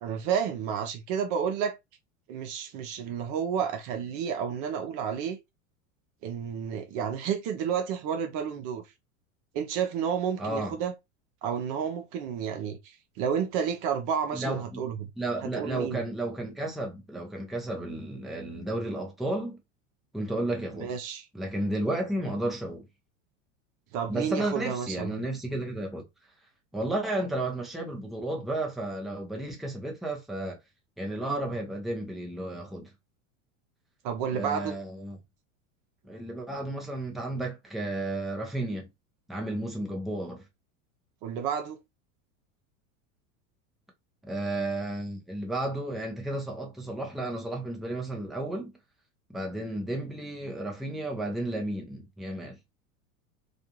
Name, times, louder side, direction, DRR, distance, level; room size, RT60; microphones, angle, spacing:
voice 1, 0.0-1.8 2.3-5.4 6.2-8.8 9.5-10.9 11.4-15.1 15.4-16.0 20.8-21.3 23.9-25.2 34.0-34.8 41.2-41.8, right 7 dB, 45° right, 0.6 m, -31 dB
voice 2, 10.4-10.7 14.3-14.8 15.2-19.6 20.1-20.9 21.3-22.8 24.1-26.0 26.7-30.6 31.0-32.9 34.3-35.2 36.0-38.9 39.3-40.4 44.2-48.7 49.3-52.6, right 1 dB, ahead, 0.7 m, -33 dB
2.5 x 2.3 x 2.9 m
hypercardioid pair, 110°, 41 cm